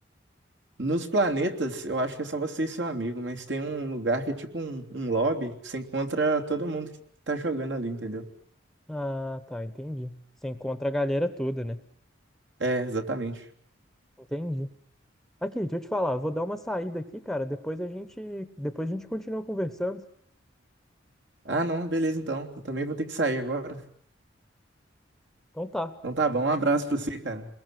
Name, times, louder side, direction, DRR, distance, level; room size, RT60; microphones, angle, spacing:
voice 1, 0.8-6.9 7.3-8.3 12.6-13.4 21.4-23.8 26.0-27.5, right 2 dB, 70° right, 4 dB, 3.3 m, -28 dB
voice 2, 8.9-11.8 14.3-14.7 15.4-20.0 25.5-26.0, equal, ahead, 10 dB, 1.0 m, -31 dB
29.0 x 21.5 x 7.7 m, 0.68 s
head